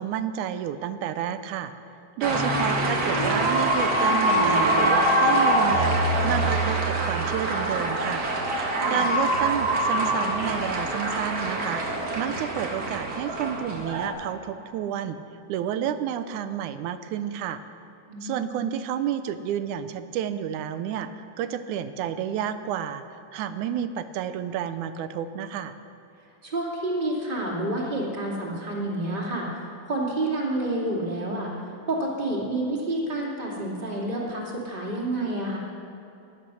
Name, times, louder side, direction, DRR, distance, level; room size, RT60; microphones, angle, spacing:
voice 1, 0.0-1.7 2.2-8.3 8.9-15.2 15.5-17.6 18.2-23.0 23.3-25.7, right 9 dB, 80° right, 11 dB, 2.0 m, -30 dB
voice 2, 2.2-2.7 8.7-9.0 18.1-18.4 26.4-35.6, right 1 dB, 15° right, -3 dB, 2.5 m, -29 dB
sound 1, 2.2-14.1, right 1 dB, 40° right, 1.6 m, -24 dB
17.0 x 11.0 x 6.2 m, 3.0 s
omnidirectional pair, 3.5 m